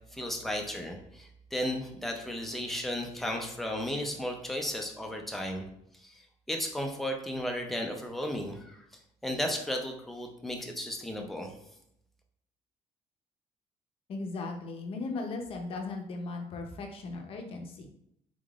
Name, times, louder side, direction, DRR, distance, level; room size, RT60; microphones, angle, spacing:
voice 1, 0.1-5.7 6.0-6.2 6.5-8.8 9.2-11.5, left 1 dB, ahead, 1 dB, 0.5 m, -34 dB
voice 2, 14.1-17.9, left 3 dB, 50° left, 3 dB, 0.6 m, -37 dB
3.7 x 3.5 x 2.4 m, 0.73 s
cardioid pair, 150°, 12 cm